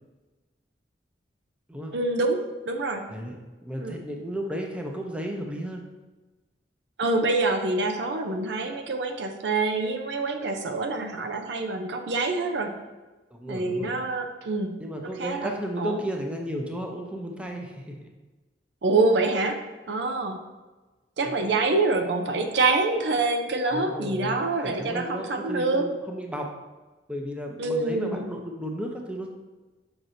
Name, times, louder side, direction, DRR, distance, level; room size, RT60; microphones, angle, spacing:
voice 1, 1.9-2.4 2.7-3.1 3.8-4.0 7.0-12.7 13.5-14.7 15.2-15.5 15.8-16.0 18.8-19.6 19.9-20.4 21.2-25.9 27.6-28.2, right 3 dB, 80° right, 5 dB, 0.6 m, -26 dB
voice 2, 3.6-5.8 13.3-13.9 14.8-18.1 21.2-21.7 23.7-26.5 27.1-29.3, equal, 5° right, 1 dB, 0.6 m, -34 dB
6.2 x 5.9 x 2.7 m, 1.2 s
head